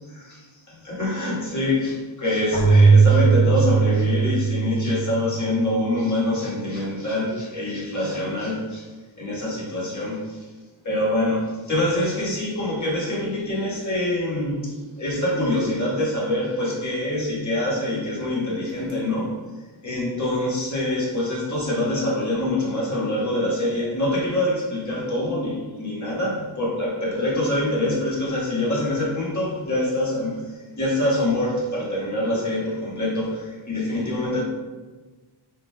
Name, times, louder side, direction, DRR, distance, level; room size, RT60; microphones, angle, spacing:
voice 1, 0.1-8.9 9.2-10.5 10.8-19.4 19.8-34.4, left 1 dB, 35° left, -6 dB, 1.4 m, -25 dB
Keyboard (musical), 2.5-6.0, right 5 dB, 15° left, 1.0 m, -18 dB
5.1 x 3.8 x 2.2 m, 1.3 s
wide cardioid pair, 150°, 49 cm